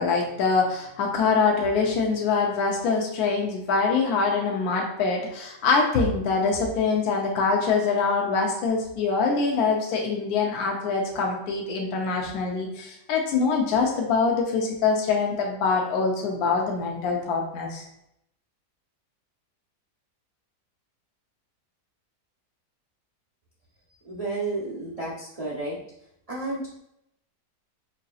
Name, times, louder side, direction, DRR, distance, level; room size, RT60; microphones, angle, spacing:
voice 1, 0.0-17.8, left 4 dB, 70° left, 0 dB, 1.1 m, -24 dB
voice 2, 24.0-25.8 26.3-26.8, right 2 dB, 35° right, -7 dB, 0.5 m, -31 dB
4.9 x 2.7 x 2.3 m, 0.78 s
omnidirectional pair, 1.8 m